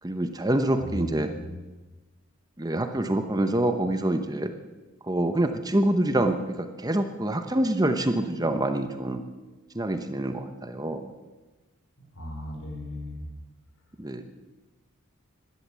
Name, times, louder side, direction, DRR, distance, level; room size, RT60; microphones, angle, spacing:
voice 1, 0.0-1.3 2.6-4.5 5.0-9.2 9.7-11.1 14.0-14.2, right 1 dB, 20° right, 8 dB, 0.9 m, -26 dB
voice 2, 0.8-1.6 12.1-13.3, equal, 70° left, 0 dB, 5.0 m, -36 dB
16.0 x 11.5 x 7.4 m, 1.2 s
head